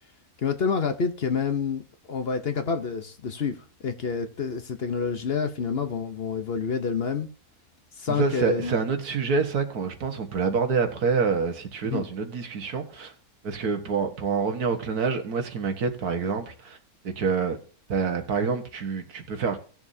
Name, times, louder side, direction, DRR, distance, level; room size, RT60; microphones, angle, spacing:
voice 1, 0.4-1.8 2.1-3.6 3.8-7.3 8.0-8.7 11.8-12.0, left 5 dB, 45° left, 1.0 m, -28 dB
voice 2, 8.1-13.1 13.4-16.8 17.0-17.6 17.9-19.6, right 5 dB, 80° right, 1.9 m, -27 dB
17.5 x 7.0 x 2.7 m
omnidirectional pair, 1.6 m